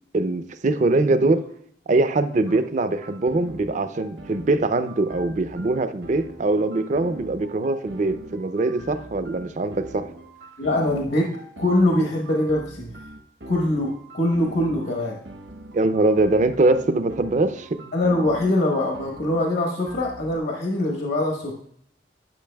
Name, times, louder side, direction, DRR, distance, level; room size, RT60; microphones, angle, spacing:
voice 1, 0.1-1.4 1.9-10.1 15.7-17.7, right 2 dB, 45° right, 11 dB, 0.4 m, -22 dB
sound 1, 2.9-20.4, right 1 dB, 75° right, 1.0 m, -42 dB
voice 2, 10.6-11.3 11.6-12.9 13.5-15.2 17.9-21.5, left 1 dB, 65° left, 0 dB, 1.2 m, -23 dB
12.0 x 5.8 x 2.2 m, 0.66 s
head